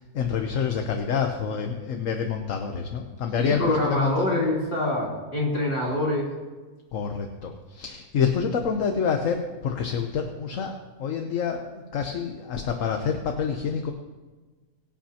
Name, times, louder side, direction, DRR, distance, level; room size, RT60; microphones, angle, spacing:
voice 1, 0.0-4.4 6.9-13.9, left 6 dB, 65° left, 4 dB, 1.2 m, -27 dB
voice 2, 3.4-6.3, left 1 dB, 35° left, -6 dB, 3.6 m, -25 dB
22.5 x 8.8 x 2.9 m, 1.3 s
omnidirectional pair, 1.5 m